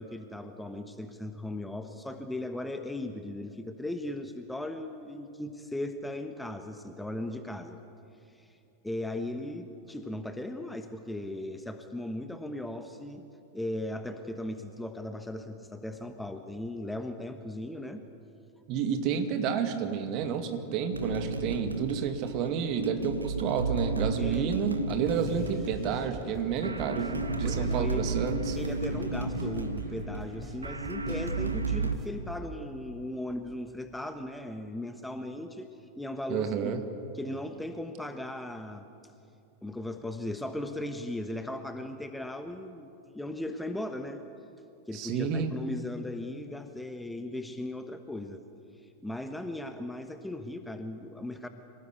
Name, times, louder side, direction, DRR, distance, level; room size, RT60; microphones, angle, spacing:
voice 1, 0.0-7.8 8.3-8.6 8.8-13.2 13.5-18.0 24.2-24.6 25.2-25.4 27.4-28.1 28.6-35.7 35.9-36.8 37.1-38.9 39.6-44.2 44.9-48.4 49.0-51.5, left 1 dB, 5° left, 7 dB, 1.2 m, -37 dB
voice 2, 18.7-28.6 36.3-36.8 44.9-45.5, right 7 dB, 40° right, 7 dB, 2.2 m, -30 dB
sound 1, 20.9-31.9, right 3 dB, 80° right, 1.5 m, -33 dB
sound 2, 25.1-32.1, right 2 dB, 20° right, 3.6 m, -45 dB
26.0 x 18.0 x 8.3 m, 2.7 s
figure-of-eight pair, 90°, 0 cm